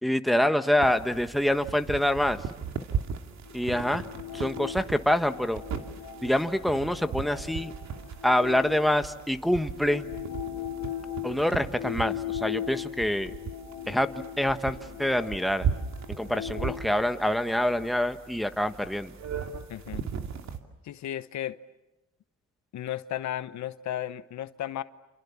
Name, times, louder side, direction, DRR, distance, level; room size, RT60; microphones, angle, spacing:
voice 1, 0.0-2.4 3.5-4.0 4.3-5.6 6.2-7.7 8.2-10.0 11.2-13.3 13.9-14.1 14.4-15.7 16.2-19.1, left 1 dB, ahead, 8 dB, 1.4 m, -26 dB
sound 1, 0.8-20.6, right 6 dB, 65° right, 2.6 m, -38 dB
sound 2, 3.5-9.3 9.7-17.9, left 11 dB, 90° left, 2.2 m, -39 dB
voice 2, 19.7-20.0 20.8-21.6 22.7-24.8, left 11 dB, 65° left, 14 dB, 1.0 m, -34 dB
28.5 x 28.0 x 7.3 m, 1.0 s
cardioid pair, 90°, 30 cm